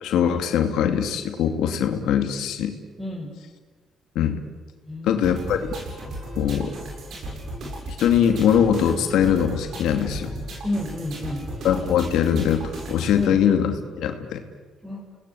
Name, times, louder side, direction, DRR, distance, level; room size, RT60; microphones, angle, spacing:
voice 1, 0.0-2.7 4.1-4.4 5.0-5.6 6.4-6.7 7.9-10.3 11.6-14.4, left 9 dB, 85° left, 6 dB, 2.5 m, -22 dB
voice 2, 3.0-3.3 4.9-5.7 10.6-11.4 13.1-13.4 14.8-15.0, left 1 dB, 5° right, -2 dB, 6.0 m, -31 dB
sound 1, 5.2-13.2, right 1 dB, 65° right, 7.9 m, -35 dB
30.0 x 19.5 x 8.7 m, 1.5 s
cardioid pair, 90°, 0 cm